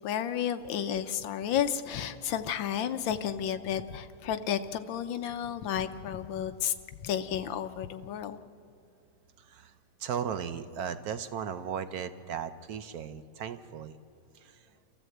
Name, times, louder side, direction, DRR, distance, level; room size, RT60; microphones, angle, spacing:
voice 1, 0.0-6.7 7.0-8.4, left 9 dB, 70° left, 10 dB, 1.4 m, -32 dB
voice 2, 10.0-13.9 14.4-14.5, right 8 dB, 70° right, 11 dB, 0.9 m, -36 dB
29.5 x 14.0 x 7.8 m, 2.5 s
omnidirectional pair, 2.3 m